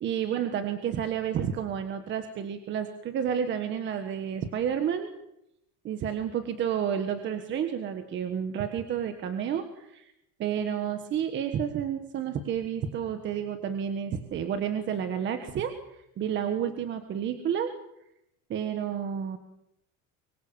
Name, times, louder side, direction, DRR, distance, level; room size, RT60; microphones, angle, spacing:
voice 1, 0.0-5.1 5.8-10.1 10.4-17.7 18.5-19.4, right 8 dB, 30° right, 8 dB, 1.4 m, -30 dB
24.5 x 24.0 x 7.3 m, 0.82 s
cardioid pair, 180°, 37 cm